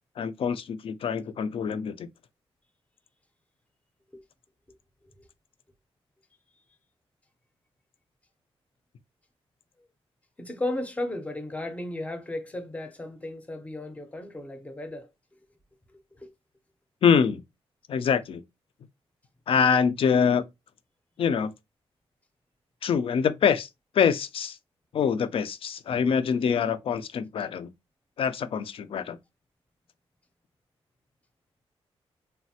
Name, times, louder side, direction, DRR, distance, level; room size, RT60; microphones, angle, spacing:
voice 1, 0.2-2.1 17.0-17.4 17.9-18.4 19.5-20.4 21.2-21.5 22.8-23.7 23.9-24.6 24.9-27.7 28.2-29.2, left 7 dB, 60° left, 0.4 m, -24 dB
voice 2, 10.4-15.1 16.1-16.3, left 1 dB, 15° left, 0.6 m, -35 dB
3.2 x 2.0 x 2.7 m
cardioid pair, 105°, 11 cm